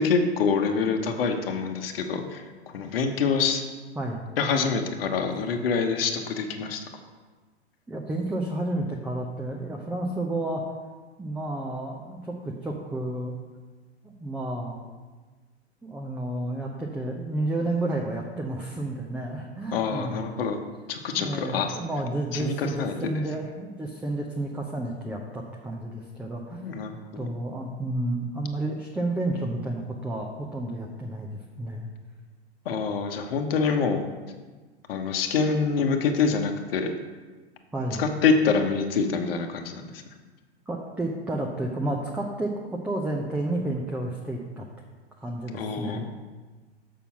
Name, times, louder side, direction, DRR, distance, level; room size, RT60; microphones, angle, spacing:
voice 1, 0.0-2.4 2.7-3.6 4.4-6.8 19.7-20.6 20.9-21.8 22.3-22.9 26.6-27.3 32.6-34.0 34.9-36.9 38.0-40.0 45.5-46.0, left 5 dB, 60° left, 5 dB, 1.0 m, -26 dB
voice 2, 7.9-10.6 11.2-13.4 14.0-14.8 15.8-20.2 21.2-26.6 27.2-31.9 37.7-38.1 40.7-44.6 45.2-46.1, right 1 dB, 5° right, -1 dB, 0.5 m, -31 dB
6.9 x 5.5 x 5.9 m, 1.3 s
figure-of-eight pair, 100°, 33 cm